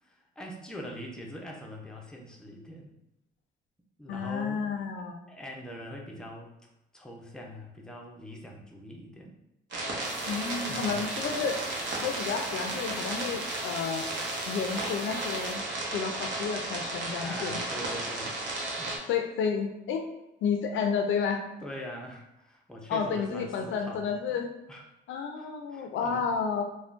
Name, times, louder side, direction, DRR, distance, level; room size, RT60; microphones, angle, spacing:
voice 1, 0.0-2.9 4.0-4.6 5.3-6.5 6.9-9.3 10.7-11.0 17.2-18.4 18.8-19.0 21.6-24.4 24.7-24.8 25.4-26.3, equal, 5° left, 0 dB, 0.5 m, -43 dB
voice 2, 4.1-5.2 10.3-11.6 12.0-14.0 14.5-15.6 15.9-17.6 19.1-20.0 20.4-21.5 22.9-24.5 25.1-26.6, left 6 dB, 75° left, 4 dB, 0.4 m, -31 dB
sound 1, 9.7-19.0, right 2 dB, 65° right, 0.8 m, -34 dB
sound 2, 10.0-15.6, right 1 dB, 45° right, 1.3 m, -49 dB
3.6 x 2.1 x 2.4 m, 0.91 s
cardioid pair, 90°, 20 cm